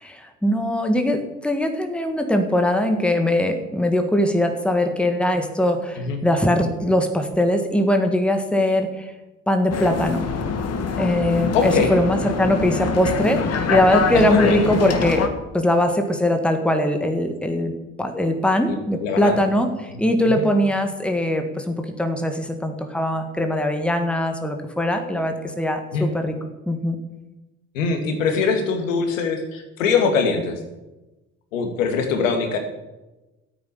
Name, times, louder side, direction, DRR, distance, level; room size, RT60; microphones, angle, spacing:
voice 1, 0.0-9.1 9.5-10.2 11.0-15.2 15.5-17.7 18.0-26.3 26.7-27.0, left 1 dB, 5° left, 5 dB, 1.9 m, -21 dB
sound 1, 9.7-15.3, left 5 dB, 40° left, 1.8 m, -24 dB
voice 2, 11.5-11.9 14.1-14.7 18.7-19.4 20.3-20.5 25.9-26.1 27.7-30.6 31.5-32.6, left 5 dB, 75° left, 5 dB, 2.4 m, -22 dB
13.5 x 8.9 x 7.2 m, 1.0 s
figure-of-eight pair, 60°, 39 cm